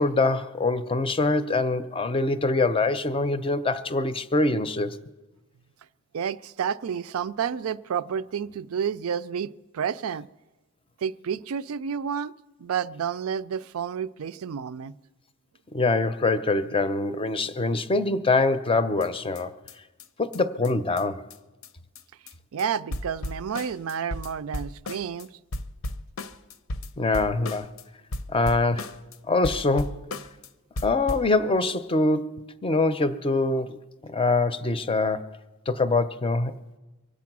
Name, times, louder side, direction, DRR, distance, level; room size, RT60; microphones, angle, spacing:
voice 1, 0.0-5.0 15.7-19.5 20.2-21.2 27.0-27.7 28.3-28.9 29.3-30.0 30.8-35.4 35.7-36.5, left 3 dB, 25° left, 0.5 m, -24 dB
voice 2, 6.1-10.3 11.0-12.3 12.6-14.9 22.5-25.3, right 7 dB, 75° right, 0.4 m, -30 dB
sound 1, 19.0-19.1 19.4-19.5 19.7-19.8 20.0-20.1 20.3-20.4 20.6-20.7 21.0-21.1 21.3-21.4 21.6-21.7 21.9-22.3 22.6-22.7 22.9-25.3 25.5-27.8 28.1-29.2 29.4-30.5 30.8-31.3, left 1 dB, 65° left, 0.7 m, -35 dB
23.5 x 8.4 x 6.0 m
head